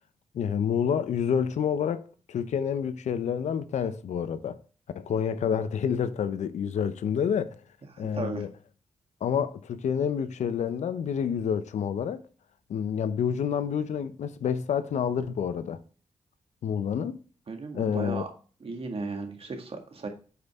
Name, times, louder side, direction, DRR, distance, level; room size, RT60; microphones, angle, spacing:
voice 1, 0.3-4.6 4.9-7.5 8.0-8.5 9.2-12.2 12.7-15.8 16.6-17.2 17.7-18.2, left 7 dB, 80° left, 0.6 m, -28 dB
voice 2, 7.9-8.4 17.5-18.3 18.6-20.1, right 3 dB, 55° right, 1.8 m, -35 dB
8.0 x 5.4 x 3.6 m
cardioid pair, 50°, 12 cm